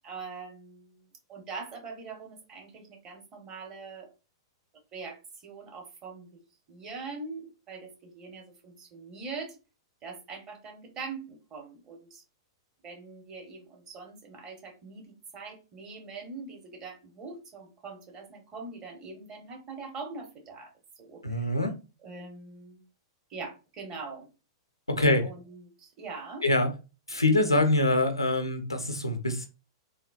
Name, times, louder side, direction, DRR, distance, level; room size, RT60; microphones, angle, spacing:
voice 1, 0.0-4.1 4.9-6.3 6.7-9.6 10.0-12.2 12.8-20.7 21.0-21.6 22.0-22.8 23.3-24.3 25.2-26.4, right 4 dB, 30° right, 0.9 m, -43 dB
voice 2, 21.2-21.7 24.9-25.3 26.4-26.7 27.1-29.5, left 2 dB, 85° left, 0.5 m, -24 dB
3.7 x 2.1 x 2.3 m
figure-of-eight pair, 100°, 2 cm